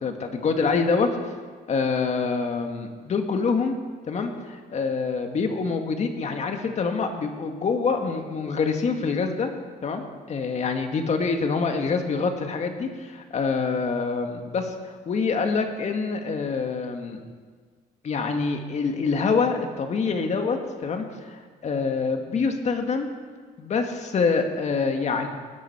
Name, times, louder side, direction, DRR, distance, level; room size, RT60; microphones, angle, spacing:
voice 1, 0.0-1.1 1.7-3.8 4.1-9.5 9.8-14.7 15.1-17.2 18.0-23.1 23.6-25.3, left 4 dB, 40° left, 5 dB, 2.0 m, -26 dB
20.0 x 10.0 x 5.8 m, 1.5 s
cardioid pair, 110°, 17 cm